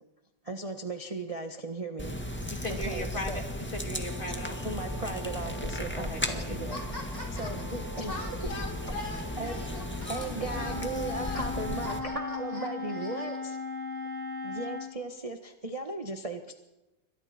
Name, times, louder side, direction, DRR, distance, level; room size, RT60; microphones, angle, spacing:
voice 1, 0.4-3.4 4.6-6.8 7.4-8.1 8.4-8.5 8.8-8.9 9.4-9.5 10.1-13.6 14.4-16.5, right 2 dB, 20° right, 4 dB, 1.3 m, -37 dB
sound 1, 2.0-12.0, left 1 dB, 5° left, 1.6 m, -36 dB
voice 2, 2.5-4.6 6.0-6.6, left 1 dB, 25° left, 1 dB, 3.6 m, -38 dB
sound 2, 4.1-10.9, right 1 dB, 85° right, 8.9 m, -45 dB
voice 3, 6.7-7.8 8.1-13.4, left 2 dB, 50° left, -1 dB, 6.6 m, -43 dB
Wind instrument woodwind instrument, 10.5-14.9, left 4 dB, 35° right, 3.1 m, -37 dB
28.0 x 25.0 x 4.4 m, 1.0 s
omnidirectional pair, 2.0 m